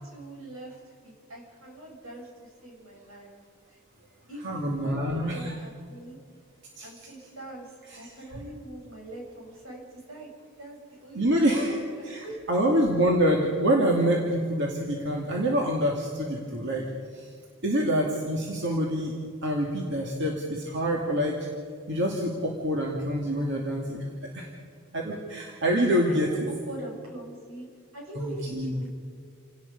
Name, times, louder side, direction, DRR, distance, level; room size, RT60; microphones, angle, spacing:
voice 1, 0.1-3.3 3.7-3.8 4.3-6.2 6.8-9.8 10.1-10.3 10.6-12.4 26.1-27.7 27.9-28.9, right 1 dB, 80° right, -1 dB, 7.4 m, -43 dB
voice 2, 4.4-5.5 6.8-6.9 11.1-16.9 17.1-17.3 17.6-19.1 19.4-21.4 21.9-24.1 24.3-24.5 24.9-26.5 28.1-28.8, equal, 55° right, -1 dB, 2.5 m, -26 dB
28.5 x 18.0 x 5.4 m, 2.2 s
head